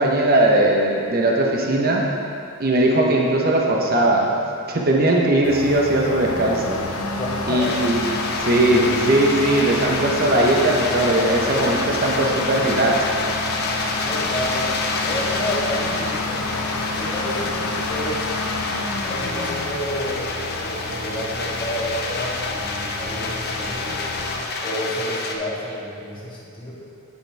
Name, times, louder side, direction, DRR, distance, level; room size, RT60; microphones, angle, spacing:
voice 1, 0.0-2.0 2.6-4.3 4.7-6.8 7.5-8.0 8.4-12.9, right 1 dB, 45° right, -1 dB, 0.9 m, -19 dB
sound 1, 5.4-24.4, left 2 dB, 90° left, 0.8 m, -29 dB
voice 2, 7.1-7.7 14.0-14.8 15.0-18.3 19.0-24.1 24.6-26.7, equal, 25° left, -5 dB, 1.6 m, -30 dB
sound 2, 7.6-25.3, left 3 dB, 50° left, 0.7 m, -29 dB
9.4 x 8.2 x 3.4 m, 2.5 s
head